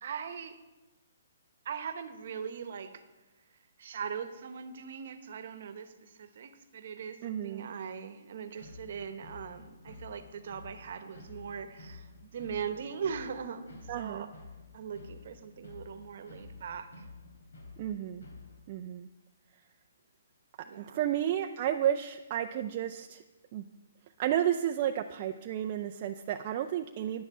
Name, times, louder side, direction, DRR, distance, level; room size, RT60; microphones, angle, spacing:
voice 1, 0.0-0.6 1.6-3.0 3.8-14.3 14.7-17.0 20.6-21.0, right 7 dB, 55° right, 10 dB, 1.0 m, -40 dB
voice 2, 7.2-7.7 13.9-14.3 17.8-18.2 18.7-19.1 20.8-23.2 23.5-23.6 24.2-27.2, right 11 dB, 35° right, 5 dB, 0.5 m, -32 dB
sound 1, 8.5-18.6, left 3 dB, 80° left, 4.2 m, -51 dB
10.5 x 8.4 x 5.4 m, 1.1 s
hypercardioid pair, 155°, 0 cm